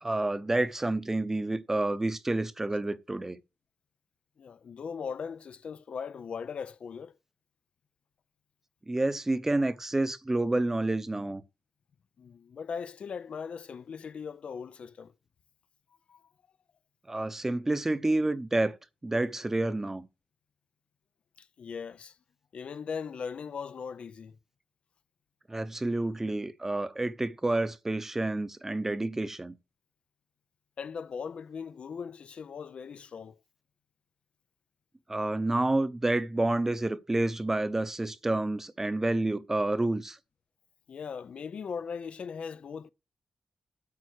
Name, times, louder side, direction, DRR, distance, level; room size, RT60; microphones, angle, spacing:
voice 1, 0.0-3.4 8.9-11.4 17.1-18.8 19.0-20.1 25.5-29.6 35.1-40.2, right 2 dB, 15° right, 0.7 m, -29 dB
voice 2, 4.4-7.1 12.2-15.1 16.1-16.2 21.4-22.2 22.5-24.4 30.8-33.4 40.9-42.9, left 6 dB, 60° left, 0.5 m, -39 dB
8.6 x 7.6 x 6.4 m
wide cardioid pair, 105°, 2 cm